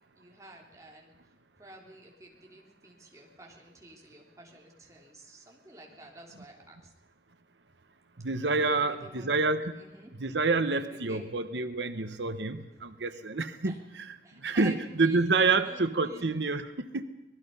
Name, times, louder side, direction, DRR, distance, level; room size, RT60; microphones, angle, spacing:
voice 1, 0.2-1.1 1.6-6.9 8.6-9.3 9.7-10.1 10.9-11.2 12.5-12.6 13.7-13.8 14.2-16.3, right 1 dB, 20° right, -1 dB, 3.6 m, -50 dB
voice 2, 8.2-9.7 10.2-17.0, right 3 dB, 90° right, 10 dB, 1.1 m, -28 dB
25.5 x 19.5 x 5.6 m, 0.99 s
head